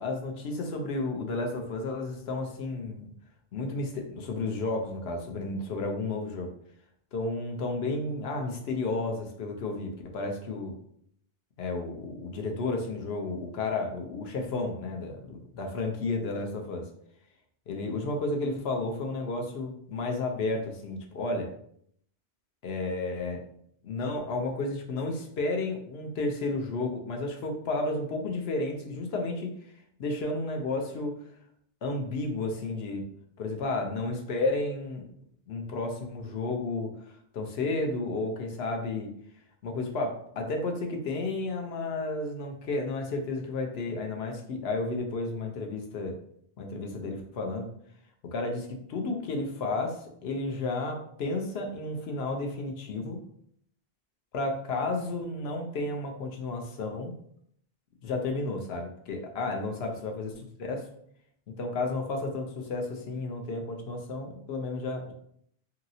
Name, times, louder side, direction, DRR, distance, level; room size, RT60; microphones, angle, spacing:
voice 1, 0.0-3.1 3.5-6.5 7.1-10.7 11.6-16.9 17.7-21.5 22.6-23.4 23.8-29.5 30.0-31.2 31.8-33.1 33.4-35.1 35.5-39.1 39.6-46.2 46.6-47.7 48.2-53.2 54.3-57.2 58.0-60.9 61.6-65.1, left 2 dB, 85° left, 2 dB, 0.9 m, -32 dB
2.9 x 2.8 x 2.6 m, 0.66 s
omnidirectional pair, 1.0 m